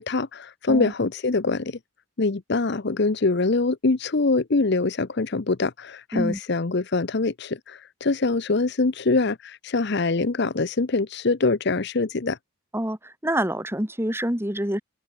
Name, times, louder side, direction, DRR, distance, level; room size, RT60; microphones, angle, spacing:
voice 1, 0.0-1.8 2.2-12.4, left 3 dB, 55° left, 0.7 m, -24 dB
voice 2, 12.7-14.8, right 1 dB, 10° right, 2.5 m, -26 dB
head